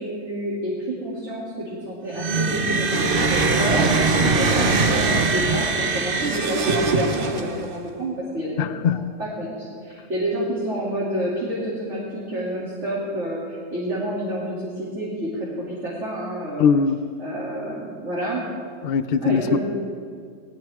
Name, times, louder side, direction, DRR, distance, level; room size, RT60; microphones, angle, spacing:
voice 1, 0.0-3.9 4.1-16.7 17.2-18.4 19.2-19.6, right 1 dB, 70° right, 3.2 m, -29 dB
sound 1, 2.1-7.8, right 3 dB, 50° right, 1.1 m, -21 dB
voice 2, 8.6-9.1 16.6-17.0 18.8-19.6, left 6 dB, 60° left, 0.8 m, -20 dB
20.0 x 18.5 x 3.6 m
omnidirectional pair, 1.3 m